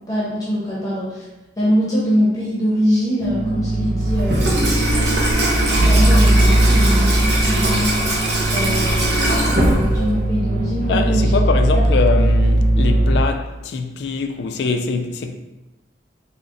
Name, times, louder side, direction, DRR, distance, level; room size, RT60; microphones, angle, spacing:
voice 1, 0.1-1.2 1.6-4.8 5.5-8.1 8.5-11.8, equal, 20° left, 0.7 m, -23 dB
sound 1, 3.2-13.2, right 1 dB, 45° right, 0.3 m, -18 dB
Water tap faucet / Sink (filling or washing), 4.1-10.3, right 1 dB, 65° right, 0.8 m, -21 dB
voice 2, 10.9-15.4, left 4 dB, 65° left, 0.3 m, -23 dB
3.7 x 2.1 x 3.8 m
head